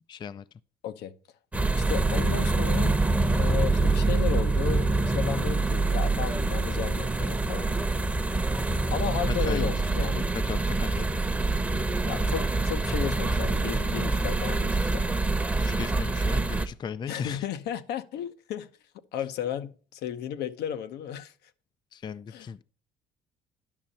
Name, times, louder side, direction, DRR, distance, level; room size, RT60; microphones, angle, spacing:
voice 1, 0.1-0.4 9.5-9.7 10.0-11.1 15.5-17.5 21.9-22.6, left 7 dB, 25° left, 0.3 m, -37 dB
sound 1, 1.5-16.7, right 3 dB, 10° right, 0.8 m, -25 dB
voice 2, 1.7-3.0 3.3-7.7 8.9-10.3 12.0-15.2 17.1-18.7 19.1-21.3 22.3-22.5, left 9 dB, 75° left, 0.9 m, -34 dB
10.5 x 6.4 x 4.1 m
cardioid pair, 110°, 17 cm